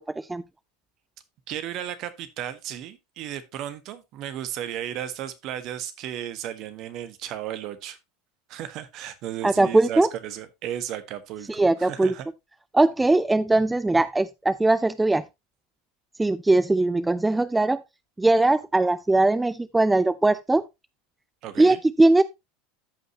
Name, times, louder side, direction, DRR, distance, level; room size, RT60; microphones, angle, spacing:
voice 1, 1.5-8.0 8.5-12.3 21.4-21.8, right 11 dB, 50° right, 1.4 m, -34 dB
voice 2, 9.4-10.1 11.5-12.1 12.7-15.2 16.2-17.8 18.2-20.6 21.6-22.2, right 2 dB, 10° right, 0.4 m, -20 dB
14.0 x 5.4 x 2.9 m
hypercardioid pair, 80°, 0 cm